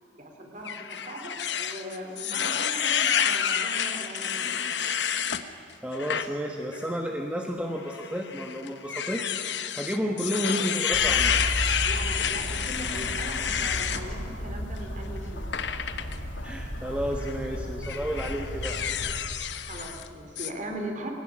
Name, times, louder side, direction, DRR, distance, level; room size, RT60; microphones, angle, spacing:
voice 1, 0.2-4.4 11.8-15.5 19.7-21.1, right 1 dB, 40° right, 3 dB, 3.5 m, -39 dB
sound 1, 0.6-5.4 5.9-6.3 6.7-6.8 7.9-14.0 15.5-16.2 17.1-17.4 17.8-20.1 20.4-20.5, left 8 dB, 65° left, 1.1 m, -29 dB
voice 2, 5.8-9.4 9.7-11.3 16.4-18.8, equal, 5° right, 1 dB, 1.3 m, -31 dB
sound 2, 10.9-19.1, equal, 90° left, 2.9 m, -34 dB
22.0 x 17.5 x 9.9 m, 2.3 s
head